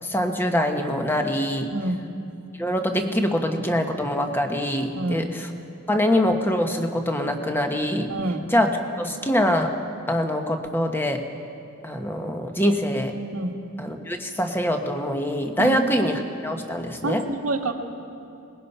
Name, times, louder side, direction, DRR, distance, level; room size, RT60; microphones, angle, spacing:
voice 1, 0.0-1.7 2.6-5.5 5.9-8.1 8.5-8.7 9.0-9.7 10.1-11.2 11.8-13.1 13.8-17.2, equal, 10° left, 4 dB, 1.3 m, -24 dB
voice 2, 1.7-2.1 4.9-5.3 8.1-8.5 13.3-13.5 15.6-15.8 17.0-17.7, right 2 dB, 85° right, 3 dB, 1.7 m, -27 dB
24.0 x 20.5 x 5.6 m, 2.7 s
head